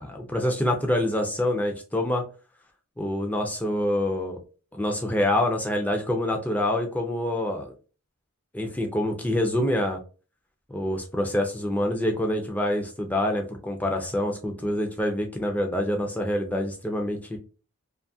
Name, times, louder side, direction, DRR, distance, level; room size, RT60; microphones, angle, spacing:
voice 1, 0.0-2.2 3.0-4.4 4.7-7.7 8.5-10.0 10.7-17.4, left 1 dB, 5° left, 2 dB, 0.4 m, -26 dB
2.5 x 2.4 x 2.6 m, 0.35 s
head